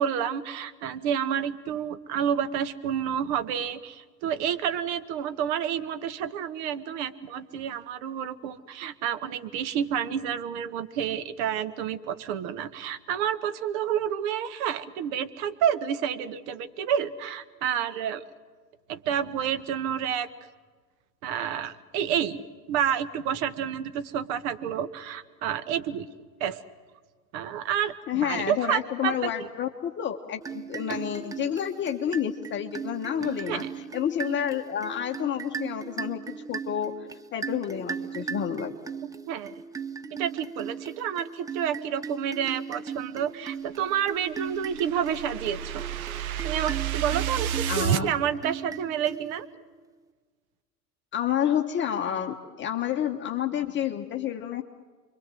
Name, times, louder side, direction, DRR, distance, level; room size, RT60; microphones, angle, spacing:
voice 1, 0.0-18.2 18.9-20.3 21.2-22.4 22.7-26.1 26.4-26.6 27.3-29.3 30.9-31.0 33.2-33.7 39.3-39.6 40.1-45.9 46.2-49.5, right 9 dB, 45° right, 11 dB, 1.6 m, -29 dB
voice 2, 28.1-36.2 36.5-36.9 37.3-38.7 47.7-48.1 51.1-54.6, left 9 dB, 25° left, 3 dB, 1.3 m, -29 dB
sound 1, 30.4-49.6, right 6 dB, 5° right, 0.7 m, -38 dB
sound 2, 44.0-48.0, right 10 dB, 60° right, 1.0 m, -30 dB
29.5 x 23.5 x 7.8 m, 1.4 s
figure-of-eight pair, 85°, 48 cm